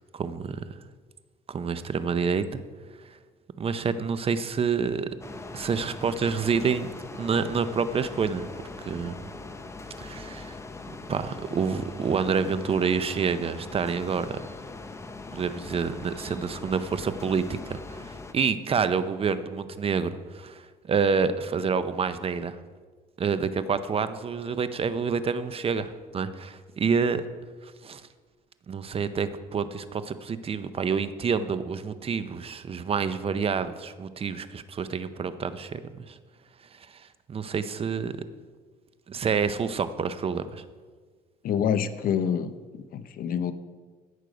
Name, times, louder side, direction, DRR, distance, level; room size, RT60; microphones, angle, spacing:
voice 1, 0.1-0.6 1.5-2.6 3.6-5.1 5.5-6.9 7.2-8.5 8.8-9.1 10.0-10.6 11.1-14.4 15.3-22.6 23.2-27.2 27.6-28.0 28.7-36.2 36.8-38.1 39.1-40.6, right 5 dB, 35° right, 12 dB, 0.7 m, -28 dB
sound 1, 5.2-18.3, left 3 dB, 15° left, 0.8 m, -41 dB
voice 2, 41.4-43.5, left 8 dB, 60° left, 12 dB, 0.7 m, -27 dB
16.0 x 6.3 x 5.1 m, 1.5 s
cardioid pair, 110°, 17 cm